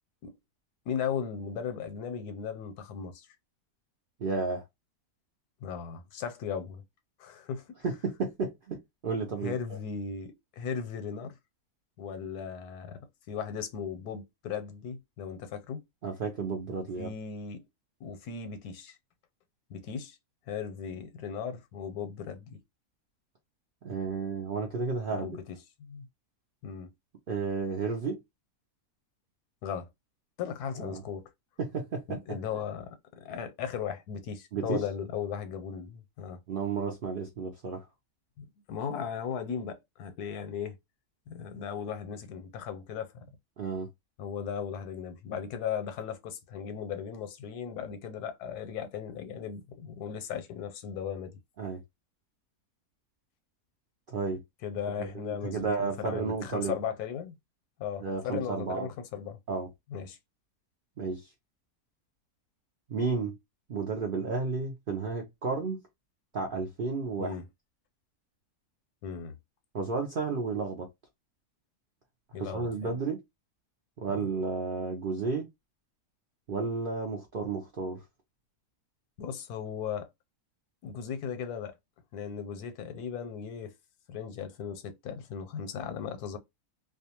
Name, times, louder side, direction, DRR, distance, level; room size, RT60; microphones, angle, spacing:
voice 1, 0.9-3.3 5.6-6.8 7.2-7.8 9.4-11.4 12.0-13.0 13.3-15.8 17.0-17.6 18.0-19.0 19.7-20.2 20.5-22.6 25.1-25.4 25.8-26.0 26.6-26.9 29.6-29.9 30.4-31.3 32.1-33.0 33.2-36.4 38.4-40.8 41.3-43.3 44.2-51.4 54.6-57.3 57.8-59.4 59.9-60.2 67.2-67.4 69.0-69.3 72.3-73.0 74.1-74.3 79.2-80.1 80.8-81.8 82.1-83.7 84.1-86.4, left 7 dB, 85° left, 1.1 m, -37 dB
voice 2, 4.2-4.6 7.8-9.5 16.0-17.1 23.8-25.3 27.3-28.2 30.8-31.0 31.6-32.2 32.5-32.6 34.5-34.8 36.5-37.9 43.6-43.9 51.6-51.8 54.1-54.4 55.0-56.7 58.0-58.9 59.5-59.7 61.0-61.3 62.9-63.4 63.7-65.8 66.3-67.4 69.7-70.9 72.4-73.2 74.0-75.5 76.5-78.0, right 4 dB, 70° right, 0.5 m, -32 dB
2.5 x 2.2 x 2.8 m
omnidirectional pair, 1.6 m